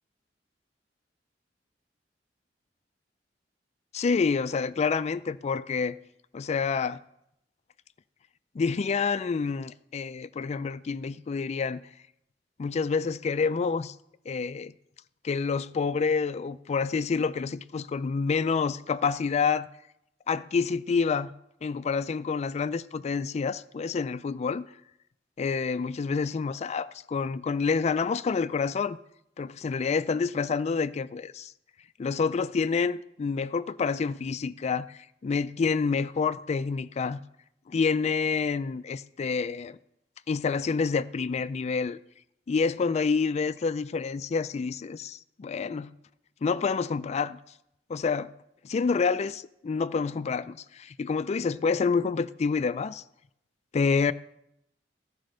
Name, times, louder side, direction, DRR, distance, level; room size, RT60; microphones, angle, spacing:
voice 1, 3.9-6.0 6.3-7.0 8.6-11.8 12.6-13.9 14.3-14.7 15.2-19.7 20.3-21.3 21.6-24.7 25.4-29.0 29.4-31.5 32.0-37.2 37.7-39.8 40.3-42.0 42.5-45.9 46.4-47.4 47.9-48.3 48.6-53.0 53.7-54.1, left 5 dB, 40° left, 0.3 m, -28 dB
14.5 x 5.1 x 6.3 m
head